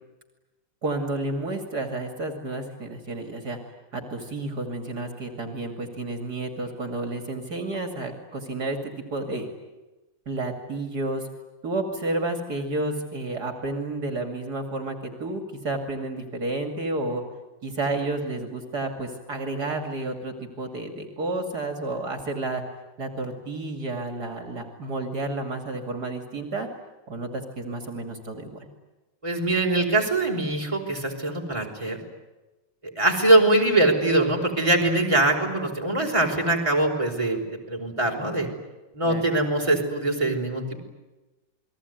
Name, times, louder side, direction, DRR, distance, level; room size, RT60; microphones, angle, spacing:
voice 1, 0.8-3.6 3.9-9.5 10.3-11.3 11.6-17.2 17.6-22.6 23.0-26.7 27.1-28.7 39.0-39.3, right 2 dB, 60° right, 5 dB, 3.1 m, -31 dB
voice 2, 29.2-32.0 33.0-37.4 37.7-38.5 38.9-40.8, right 2 dB, 15° right, 0 dB, 4.9 m, -22 dB
29.0 x 21.5 x 9.4 m, 1.1 s
omnidirectional pair, 1.9 m